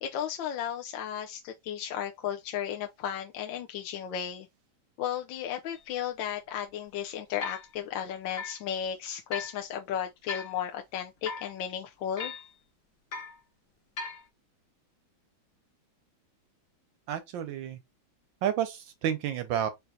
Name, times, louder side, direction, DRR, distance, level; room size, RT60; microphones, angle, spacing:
voice 1, 0.0-4.5 5.0-12.3, left 9 dB, 75° left, 1.3 m, -34 dB
sound 1, 5.7-5.8 6.5-6.6 7.4-7.7 8.4-8.6 9.3-9.5 10.3-10.6 11.2-11.5 12.2-12.5 13.1-13.4 14.0-14.2, left 4 dB, 45° left, 0.8 m, -38 dB
voice 2, 17.1-17.8 18.4-19.7, right 10 dB, 75° right, 1.3 m, -30 dB
4.6 x 3.9 x 2.7 m
omnidirectional pair, 2.2 m